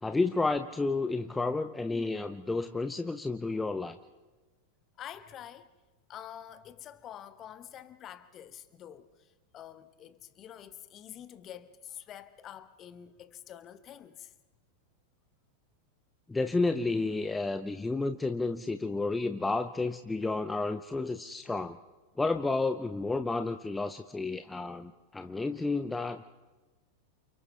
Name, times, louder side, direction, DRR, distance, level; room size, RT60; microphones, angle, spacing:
voice 1, 0.0-4.0 16.3-21.8 22.2-26.3, left 3 dB, 10° left, 0.7 m, -31 dB
voice 2, 5.0-5.7 6.1-14.3, left 10 dB, 30° left, 1.2 m, -47 dB
29.5 x 28.5 x 3.4 m
figure-of-eight pair, 90°, 0 cm